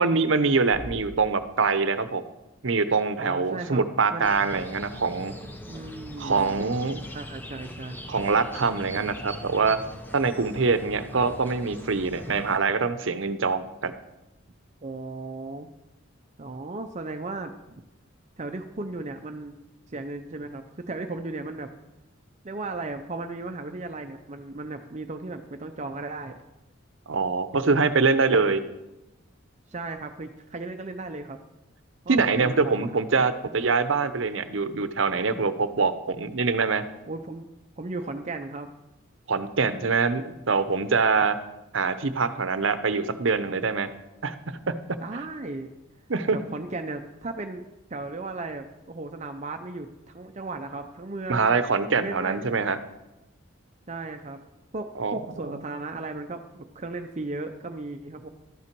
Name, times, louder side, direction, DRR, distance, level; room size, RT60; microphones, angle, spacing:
voice 1, 0.0-2.2 2.6-5.3 6.2-7.0 8.1-9.8 10.1-13.9 27.1-28.6 32.1-36.8 39.3-41.4 41.7-43.9 44.2-45.0 46.1-46.4 51.3-52.8 55.0-55.2 55.5-55.6, right 4 dB, 70° right, 11 dB, 0.8 m, -24 dB
Bass drum, 0.7-2.4, equal, 80° left, 1.5 m, -44 dB
voice 2, 3.2-3.8 4.1-4.3 5.7-6.6 7.1-8.0 14.8-15.7 16.4-17.5 18.4-19.5 19.9-21.7 22.4-26.4 29.7-31.4 32.0-32.9 37.1-37.5 37.8-38.7 45.0-45.7 46.3-47.6 47.9-51.6 51.9-52.4 53.9-54.4 54.7-58.3, right 2 dB, 35° right, 6 dB, 0.6 m, -36 dB
sound 1, 4.2-12.6, left 1 dB, 10° left, 0.8 m, -41 dB
12.5 x 8.7 x 4.6 m, 0.95 s
head